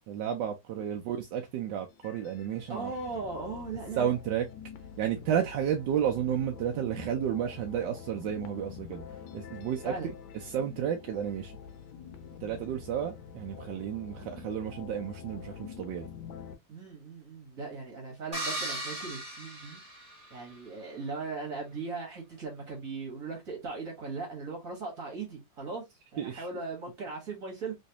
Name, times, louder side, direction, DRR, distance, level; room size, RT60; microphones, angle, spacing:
voice 1, 0.1-2.9 4.0-4.5 5.0-10.1 10.4-11.5 12.4-16.1 26.2-26.5, right 9 dB, 75° right, 1.1 m, -32 dB
sound 1, 1.9-16.5, left 7 dB, 80° left, 1.4 m, -46 dB
voice 2, 2.7-4.1 9.8-10.1 16.7-19.8 20.3-25.8 26.1-27.8, right 4 dB, 45° right, 1.5 m, -38 dB
sound 2, 18.3-20.6, right 1 dB, 25° right, 1.5 m, -37 dB
3.2 x 3.1 x 2.7 m
omnidirectional pair, 2.2 m